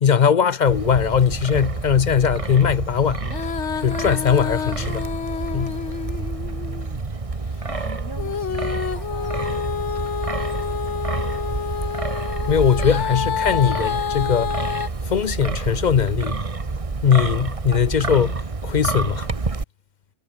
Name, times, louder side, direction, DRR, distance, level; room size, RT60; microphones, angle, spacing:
voice 1, 0.0-3.2 3.8-5.1 5.5-5.8 12.5-14.6 15.1-16.4 17.0-19.3, left 7 dB, 45° left, 0.6 m, -20 dB
Wind, 0.7-19.6, right 3 dB, 30° right, 1.3 m, -28 dB
Female singing, 3.2-7.0 8.2-14.9, left 7 dB, 70° left, 1.5 m, -28 dB
voice 2, 6.4-6.8 7.7-11.5 12.7-14.0 14.4-14.7, equal, 15° left, 3.8 m, -45 dB
omnidirectional pair, 1.3 m